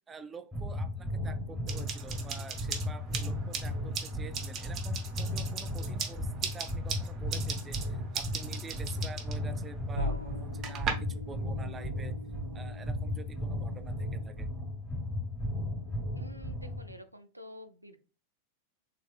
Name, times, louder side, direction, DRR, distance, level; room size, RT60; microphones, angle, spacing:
voice 1, 0.1-12.2 12.5-14.5, right 5 dB, 20° right, 11 dB, 0.3 m, -48 dB
sound 1, 0.5-16.9, left 1 dB, ahead, 1.4 m, -35 dB
sound 2, 1.7-10.9, right 7 dB, 35° right, 0.8 m, -39 dB
sound 3, 9.9-14.6, left 2 dB, 85° left, 0.4 m, -41 dB
voice 2, 16.1-18.0, equal, 85° right, 8 dB, 0.4 m, -49 dB
4.1 x 3.4 x 2.3 m, 0.34 s
figure-of-eight pair, 90°, 0 cm